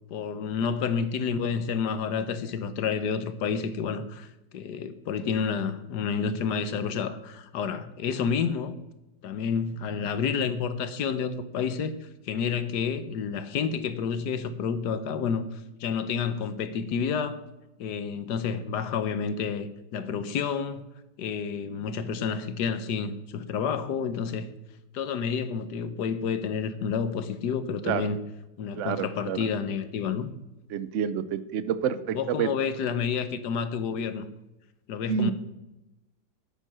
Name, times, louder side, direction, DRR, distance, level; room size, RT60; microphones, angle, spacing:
voice 1, 0.1-8.8 9.2-17.4 17.8-20.8 21.2-24.5 24.9-28.2 28.6-30.3 32.1-34.3 34.9-35.3, left 6 dB, 65° left, 11 dB, 1.3 m, -29 dB
voice 2, 28.7-29.5 30.7-32.5 35.0-35.3, right 8 dB, 65° right, 14 dB, 0.7 m, -28 dB
9.3 x 9.3 x 6.1 m, 0.95 s
omnidirectional pair, 2.1 m